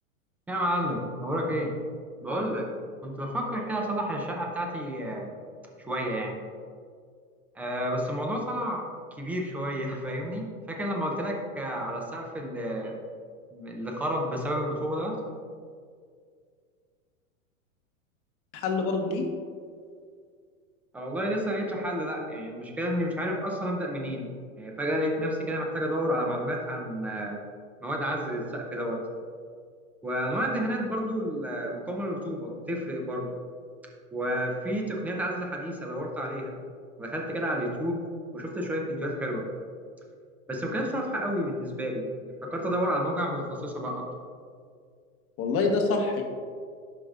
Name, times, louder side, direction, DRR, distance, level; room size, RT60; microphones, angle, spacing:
voice 1, 0.5-1.7 2.2-2.7 3.0-5.3 5.8-6.4 7.6-8.9 9.2-12.9 13.5-15.2 20.9-24.3 24.6-27.4 27.8-29.0 30.0-33.3 34.1-36.5 37.0-38.1 38.3-39.5 40.5-42.1 42.4-44.1, equal, 5° right, 0 dB, 0.4 m, -30 dB
voice 2, 18.5-19.2 45.4-46.2, left 3 dB, 30° left, 2 dB, 1.1 m, -26 dB
11.5 x 5.0 x 2.4 m, 2.1 s
hypercardioid pair, 125°, 42 cm